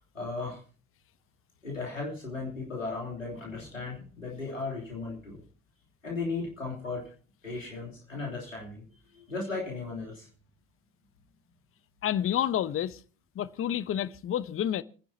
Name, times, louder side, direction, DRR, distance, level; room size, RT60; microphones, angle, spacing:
voice 1, 0.1-0.6 1.6-5.4 6.0-7.0 7.4-8.8 9.1-10.3, left 3 dB, 90° left, 3.2 m, -36 dB
voice 2, 12.0-13.0 13.3-14.8, left 10 dB, 35° left, 0.8 m, -29 dB
29.5 x 10.0 x 2.8 m
figure-of-eight pair, 55°, 38 cm